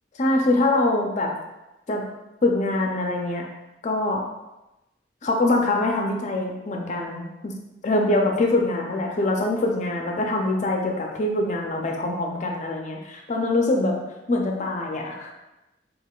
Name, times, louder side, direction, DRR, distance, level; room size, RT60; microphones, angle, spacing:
voice 1, 0.2-1.3 1.9-2.0 2.4-3.4 3.8-4.2 5.2-7.5 7.8-14.0 14.3-15.3, left 2 dB, 40° left, 1 dB, 0.5 m, -24 dB
3.5 x 2.9 x 2.3 m, 0.97 s
head